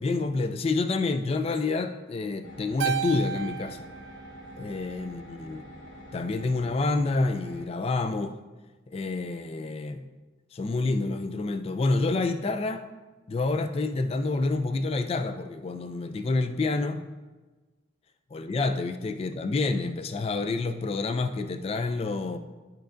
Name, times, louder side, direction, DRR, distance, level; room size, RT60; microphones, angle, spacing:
voice 1, 0.0-3.8 4.6-5.6 6.1-8.4 8.9-10.0 10.5-12.9 13.3-17.0 18.3-22.4, left 3 dB, 30° left, 9 dB, 0.3 m, -28 dB
sound 1, 2.4-7.6, equal, 65° left, 1.2 m, -46 dB
Keyboard (musical), 2.8-5.3, right 8 dB, 75° right, 0.4 m, -34 dB
11.5 x 4.5 x 2.6 m, 1.2 s
head